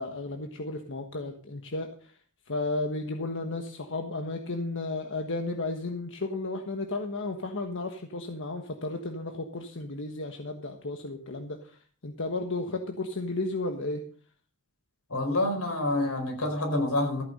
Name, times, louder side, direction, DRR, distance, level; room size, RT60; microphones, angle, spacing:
voice 1, 0.0-2.1 2.5-14.0, left 2 dB, 60° left, 4 dB, 1.4 m, -33 dB
voice 2, 15.1-17.2, left 2 dB, 85° left, 3 dB, 4.9 m, -27 dB
14.5 x 9.3 x 5.4 m, 0.43 s
head